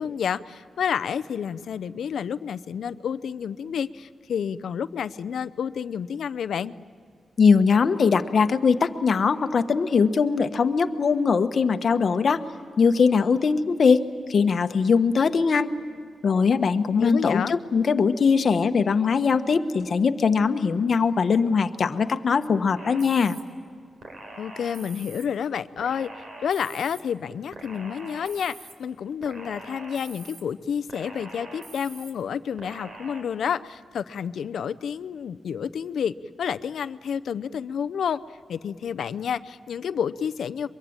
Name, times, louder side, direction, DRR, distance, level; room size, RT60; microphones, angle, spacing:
voice 1, 0.0-6.7 17.0-17.6 24.4-26.1 26.4-38.2 38.5-40.7, left 7 dB, 80° left, 13 dB, 0.6 m, -30 dB
voice 2, 7.4-12.4 12.8-14.0 14.3-15.7 16.2-23.4, left 5 dB, 55° left, 9 dB, 1.1 m, -21 dB
sound 1, 22.8-23.4 24.0-25.2 25.8-27.0 27.5-28.7 29.2-30.4 30.9-32.1 32.6-33.2, right 2 dB, 60° right, 4.0 m, -43 dB
23.5 x 23.0 x 8.7 m, 2.2 s
wide cardioid pair, 115°, 0 cm